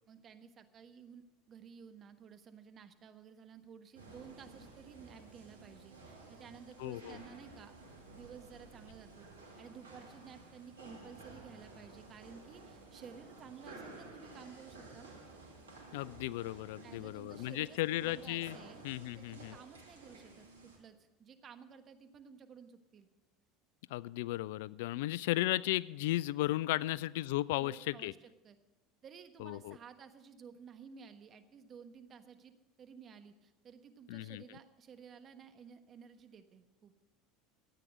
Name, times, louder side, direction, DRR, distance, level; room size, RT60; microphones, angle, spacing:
voice 1, 0.1-7.7 8.1-9.3 9.6-15.2 16.8-18.8 19.1-23.1 26.7-26.9 27.6-28.6 29.0-36.9, right 6 dB, 40° right, 9 dB, 1.2 m, -54 dB
sound 1, 3.9-20.8, right 2 dB, 85° right, 2.2 m, -54 dB
voice 2, 6.8-7.2 15.9-18.6 18.8-19.5 23.9-28.1 29.4-29.8 34.1-34.4, left 17 dB, 70° left, 21 dB, 0.3 m, -35 dB
13.5 x 9.2 x 6.3 m, 1.1 s
hypercardioid pair, 80°, 0 cm